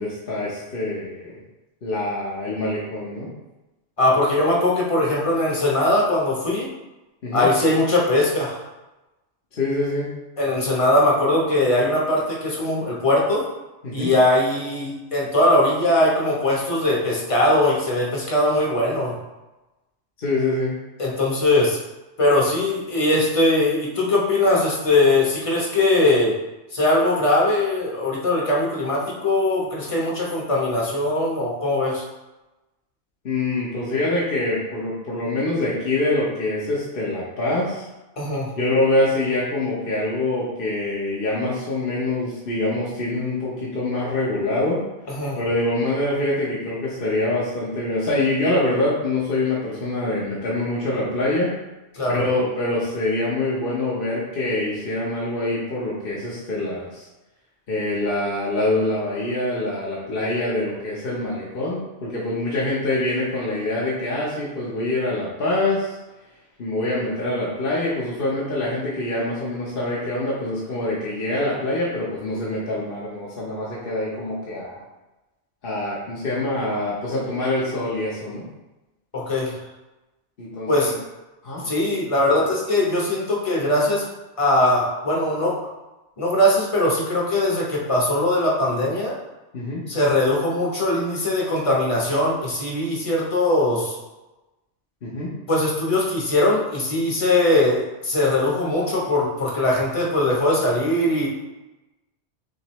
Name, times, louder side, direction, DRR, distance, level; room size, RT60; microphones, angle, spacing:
voice 1, 0.0-1.4 1.8-3.3 7.2-7.5 9.5-10.1 13.8-14.1 20.2-20.8 33.2-37.9 38.6-44.8 45.4-51.5 52.1-57.1 57.7-66.0 66.6-74.8 75.6-78.4 80.4-80.9 81.4-81.6 89.5-89.8 95.0-95.3, left 2 dB, 50° left, -6 dB, 1.0 m, -25 dB
voice 2, 4.0-6.7 7.3-8.6 10.4-13.4 13.9-19.1 21.0-21.8 22.2-26.3 26.7-32.0 38.2-38.5 45.1-45.4 51.9-52.2 79.1-79.6 80.7-80.9 81.6-84.0 84.4-85.6 86.2-89.1 89.9-94.0 95.5-101.3, left 1 dB, 30° left, -3 dB, 1.0 m, -20 dB
6.5 x 2.6 x 3.1 m, 1.0 s
omnidirectional pair, 1.2 m